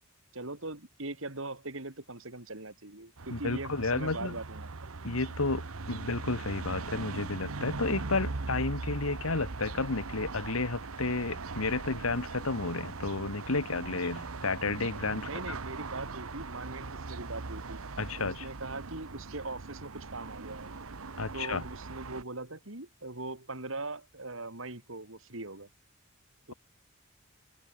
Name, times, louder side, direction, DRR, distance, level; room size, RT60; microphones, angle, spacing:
voice 1, 0.3-4.7 15.2-17.8 18.2-20.7 21.3-25.7 26.5-26.6, right 2 dB, 70° right, 3.7 m, -41 dB
sound 1, 3.2-22.2, right 3 dB, 90° right, 1.1 m, -40 dB
voice 2, 3.3-4.4 5.0-15.3 18.0-18.5 21.2-21.6, left 3 dB, 85° left, 1.7 m, -32 dB
head